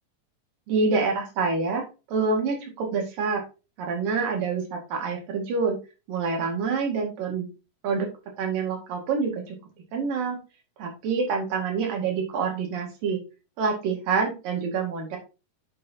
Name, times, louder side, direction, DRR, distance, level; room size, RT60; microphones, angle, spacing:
voice 1, 0.7-1.8 2.1-3.4 3.8-5.8 6.1-7.5 7.8-8.1 8.4-9.6 9.9-10.4 10.8-13.2 13.6-15.2, right 4 dB, 85° right, 1 dB, 3.8 m, -26 dB
9.1 x 6.7 x 2.8 m, 0.30 s
omnidirectional pair, 3.8 m